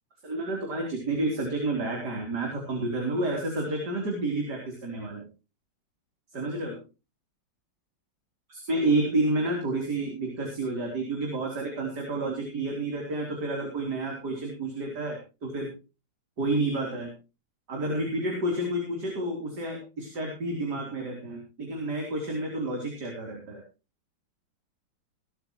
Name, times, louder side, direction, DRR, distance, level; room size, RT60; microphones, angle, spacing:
voice 1, 0.2-5.2 6.3-6.8 8.5-15.7 16.4-17.1 17.7-23.6, right 2 dB, 55° right, 1 dB, 4.1 m, -30 dB
20.0 x 12.5 x 3.0 m, 0.31 s
omnidirectional pair, 2.1 m